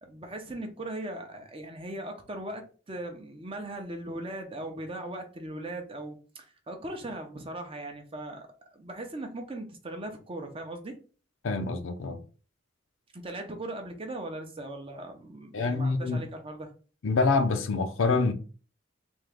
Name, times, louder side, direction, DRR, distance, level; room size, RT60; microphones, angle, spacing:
voice 1, 0.0-11.0 13.1-16.7, right 1 dB, 25° right, 0.6 m, -39 dB
voice 2, 11.4-12.2 15.5-16.2 17.0-18.3, left 3 dB, 70° left, 0.6 m, -26 dB
3.6 x 2.8 x 3.4 m
head